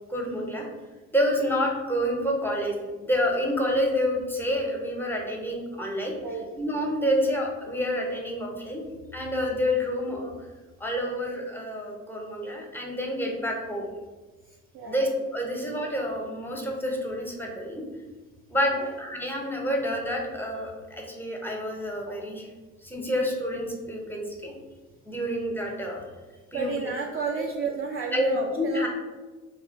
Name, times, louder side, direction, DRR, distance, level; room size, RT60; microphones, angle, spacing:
voice 1, 0.1-0.7 1.1-6.1 6.5-8.8 9.1-10.3 10.8-13.8 14.9-17.8 18.5-22.5 22.8-24.5 25.0-26.1 26.5-26.7 28.1-28.9, equal, 5° left, -1 dB, 0.7 m, -28 dB
voice 2, 6.2-6.6 14.5-15.0 15.5-15.6 18.8-18.9 26.5-28.9, right 5 dB, 35° right, -1 dB, 0.4 m, -32 dB
3.0 x 2.2 x 3.8 m, 1.3 s
figure-of-eight pair, 45°, 42 cm